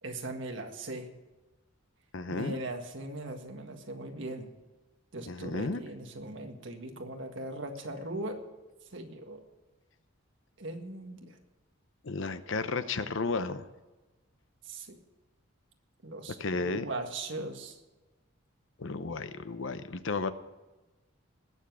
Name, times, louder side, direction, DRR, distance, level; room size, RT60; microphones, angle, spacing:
voice 1, 0.0-1.1 2.3-4.5 5.1-8.4 8.9-9.4 10.6-11.4 14.6-15.0 16.0-17.8, right 2 dB, 60° right, 4 dB, 1.8 m, -39 dB
voice 2, 2.1-2.6 5.3-5.8 12.0-13.6 16.4-16.9 18.8-20.3, left 3 dB, 60° left, 12 dB, 0.7 m, -33 dB
19.5 x 7.3 x 6.1 m, 1.2 s
head